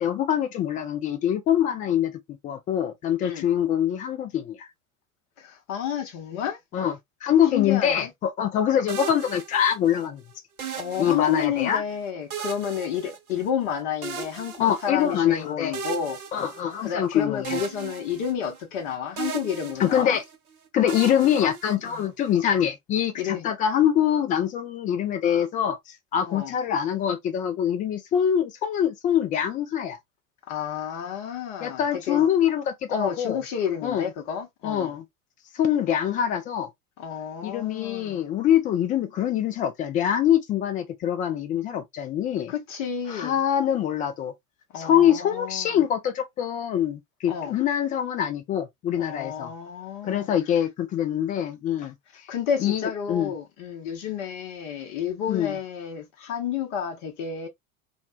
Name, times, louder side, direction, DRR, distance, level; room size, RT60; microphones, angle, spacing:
voice 1, 0.0-2.1 2.4-4.7 6.7-6.9 7.2-10.2 11.0-11.8 14.6-15.8 16.3-17.6 19.8-20.2 20.7-25.8 26.1-30.0 31.6-33.4 33.8-34.1 34.6-35.0 35.5-36.7 37.4-42.5 43.1-44.3 44.8-49.5 50.0-51.9 52.6-53.3 55.3-55.6, left 9 dB, 20° left, 0.4 m, -24 dB
voice 2, 5.4-6.6 7.5-8.1 10.7-16.2 16.8-20.2 21.9-22.1 23.1-23.4 26.2-26.5 30.5-32.2 32.9-34.9 37.0-38.2 42.5-43.4 44.7-45.8 47.3-47.5 49.0-50.3 52.3-57.5, left 8 dB, 45° left, 0.9 m, -31 dB
sound 1, 8.9-10.0 10.6-11.7 12.3-13.7 14.0-15.2 15.7-17.1 17.4-18.8 19.2-20.4 20.9-22.2, right 6 dB, 90° right, 0.6 m, -37 dB
2.5 x 2.1 x 2.4 m
figure-of-eight pair, 75°, 42 cm